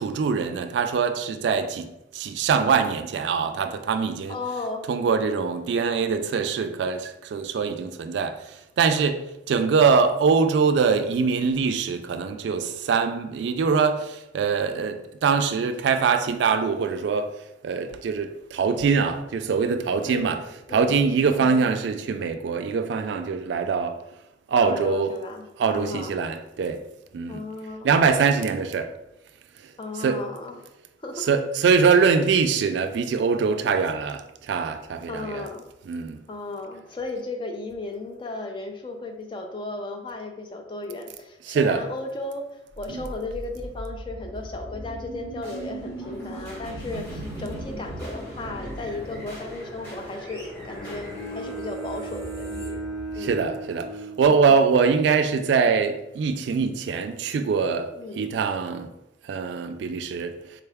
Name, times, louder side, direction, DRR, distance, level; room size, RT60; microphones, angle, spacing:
voice 1, 0.0-4.4 4.9-17.3 17.6-20.4 20.7-23.9 24.5-25.1 25.6-26.8 27.1-27.4 27.8-28.9 30.0-30.2 31.2-35.5 35.9-36.2 41.5-41.8 42.9-43.0 53.2-53.9 54.2-58.9 59.2-60.3, right 5 dB, 75° right, 0.3 m, -23 dB
voice 2, 4.3-4.9 20.0-20.3 20.7-21.1 21.3-21.7 24.6-26.1 27.3-28.0 29.8-30.7 31.0-31.3 35.1-35.7 36.3-42.5 42.8-52.8 53.1-53.4 57.9-58.3, left 2 dB, 25° left, 0.4 m, -35 dB
sound 1, 42.7-53.8, right 1 dB, 10° left, 1.0 m, -38 dB
Bowed string instrument, 50.6-54.8, right 2 dB, 90° left, 1.3 m, -36 dB
3.7 x 2.2 x 3.4 m
head